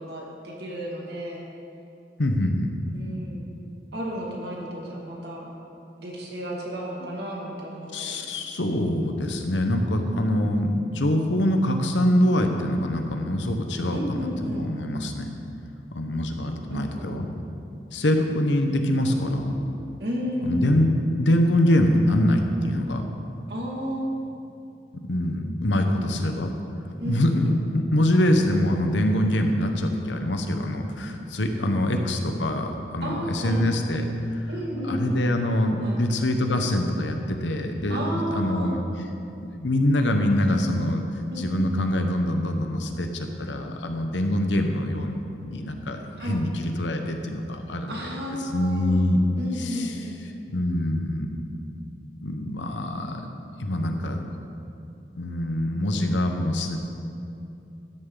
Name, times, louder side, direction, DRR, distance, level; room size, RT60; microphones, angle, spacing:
voice 1, 0.0-1.4 2.9-3.5 3.9-5.4 6.0-8.2 8.7-9.0 13.9-14.7 16.7-17.2 19.2-19.6 20.0-20.8 23.5-24.4 27.0-27.6 31.7-32.0 33.0-33.7 34.5-35.2 35.8-36.0 37.9-38.8 40.1-40.6 41.3-41.7 46.2-46.4 47.9-49.0 49.4-50.2 53.7-54.0, equal, 60° right, -3 dB, 2.2 m, -32 dB
voice 2, 2.2-2.7 7.9-15.3 15.9-17.3 17.9-19.5 20.4-23.0 24.9-26.5 27.0-34.4 34.8-38.8 39.4-41.0 41.4-45.1 45.4-48.0 48.5-49.2 49.6-49.9 50.5-51.4 52.2-53.3 53.6-54.2 55.2-56.8, left 1 dB, 90° left, 5 dB, 1.0 m, -24 dB
13.0 x 10.0 x 3.9 m, 2.6 s
head